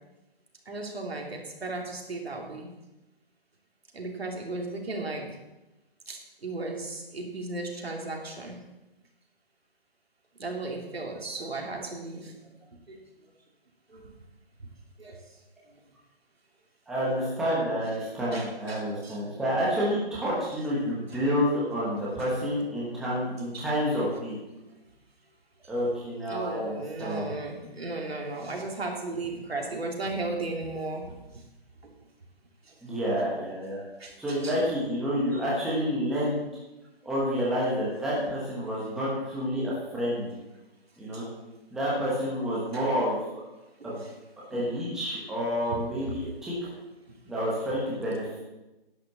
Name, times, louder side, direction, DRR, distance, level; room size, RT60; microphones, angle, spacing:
voice 1, 0.7-2.7 3.9-5.3 6.1-8.6 10.4-12.3 12.9-13.0 13.9-14.1 15.0-15.2 18.3-19.2 22.2-22.3 22.9-23.3 23.5-23.7 26.3-31.2 34.0-34.6 38.7-38.8 41.1-41.2 42.7-42.8 43.8-44.1 44.5-44.7 45.7-45.8, right 2 dB, 80° right, 1 dB, 3.1 m, -35 dB
voice 2, 16.9-24.4 25.7-27.3 28.0-28.1 32.8-33.8 34.2-36.4 37.0-40.3 41.0-41.2 41.7-43.2 43.8-44.0 44.5-46.6 47.2-48.4, equal, ahead, -7 dB, 1.2 m, -29 dB
10.5 x 6.5 x 6.8 m, 0.99 s
hypercardioid pair, 165°, 30 cm